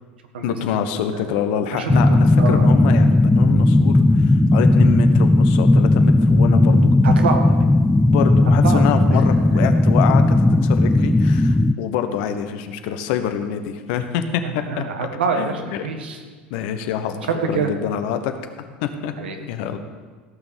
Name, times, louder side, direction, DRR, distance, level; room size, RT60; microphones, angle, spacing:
voice 1, 0.4-7.5 8.0-14.8 15.4-15.6 16.5-19.1 19.4-19.8, left 8 dB, 65° left, 8 dB, 1.2 m, -26 dB
sound 1, 1.9-11.7, left 2 dB, 10° left, 0.5 m, -15 dB
voice 2, 7.0-7.5 8.6-9.2 14.4-16.2 17.5-17.7 19.2-19.4, right 5 dB, 80° right, 4 dB, 1.6 m, -26 dB
16.0 x 6.1 x 7.1 m, 1.5 s
hypercardioid pair, 85°, 5 cm